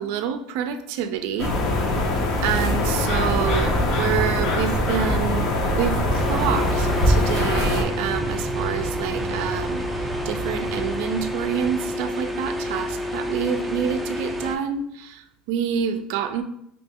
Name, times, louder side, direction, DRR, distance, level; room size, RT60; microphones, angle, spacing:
voice 1, 0.0-1.5 2.4-5.5 5.7-9.8 10.2-16.4, right 8 dB, 70° right, 9 dB, 0.4 m, -27 dB
sound 1, 1.4-7.8, left 1 dB, 50° left, 0.7 m, -22 dB
Thunder, 3.2-12.0, right 3 dB, 30° right, 0.8 m, -31 dB
sound 2, 6.1-14.6, left 1 dB, 5° right, 0.5 m, -29 dB
3.0 x 2.8 x 3.5 m, 0.77 s
supercardioid pair, 135°, 0 cm